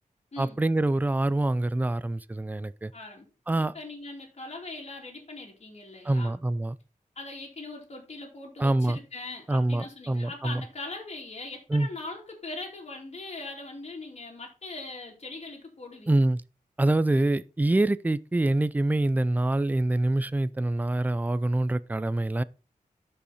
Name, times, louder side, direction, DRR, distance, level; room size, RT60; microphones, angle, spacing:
voice 1, 0.4-2.9 3.5-3.7 6.0-6.8 8.6-9.0 9.5-10.6 11.7-11.9 16.1-16.4 16.8-22.4, right 2 dB, 10° right, 0.4 m, -25 dB
voice 2, 2.9-3.3 3.7-6.4 7.1-16.3, left 2 dB, 50° left, 3.0 m, -41 dB
12.0 x 5.6 x 4.2 m
wide cardioid pair, 125°, 14 cm